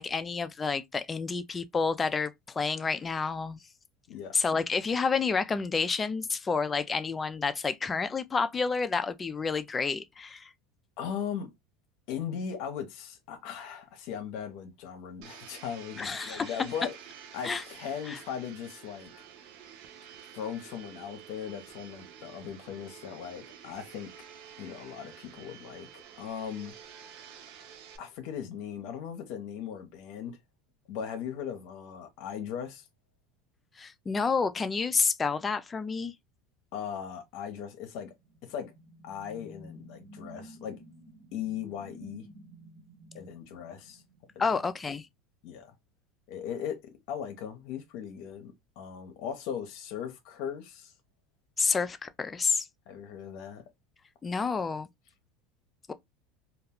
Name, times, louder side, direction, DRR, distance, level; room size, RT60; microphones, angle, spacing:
voice 1, 0.0-3.6 4.3-10.5 16.0-16.6 17.4-17.6 18.1-18.2 33.8-36.1 44.4-45.1 51.6-52.7 54.2-54.9, left 5 dB, 20° left, 0.4 m, -29 dB
voice 2, 4.1-4.4 11.0-11.5 12.1-17.0 17.3-19.1 20.3-24.1 24.6-26.7 28.0-30.4 30.9-32.9 36.7-38.1 38.4-38.7 39.0-40.8 41.3-42.3 43.1-44.0 45.4-45.7 46.3-50.9 52.9-53.6, left 8 dB, 65° left, 0.7 m, -38 dB
Domestic sounds home sounds, 15.2-28.0, right 8 dB, 65° right, 0.6 m, -49 dB
sound 1, 38.2-44.6, right 1 dB, 10° right, 1.0 m, -52 dB
2.3 x 2.2 x 3.4 m
supercardioid pair, 120°, 0 cm